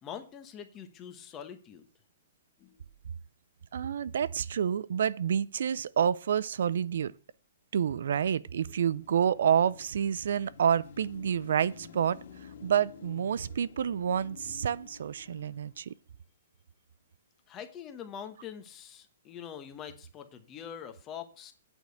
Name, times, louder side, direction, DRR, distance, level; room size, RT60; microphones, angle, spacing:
voice 1, 0.0-1.8 2.6-2.8 17.5-21.5, left 8 dB, 15° left, 1.1 m, -44 dB
voice 2, 3.7-7.1 7.7-15.9, right 8 dB, 65° right, 0.4 m, -28 dB
Car passing by / Traffic noise roadway noise / Engine, 8.7-16.0, left 6 dB, 55° left, 2.0 m, -51 dB
9.0 x 5.2 x 7.7 m
hypercardioid pair, 170°, 0 cm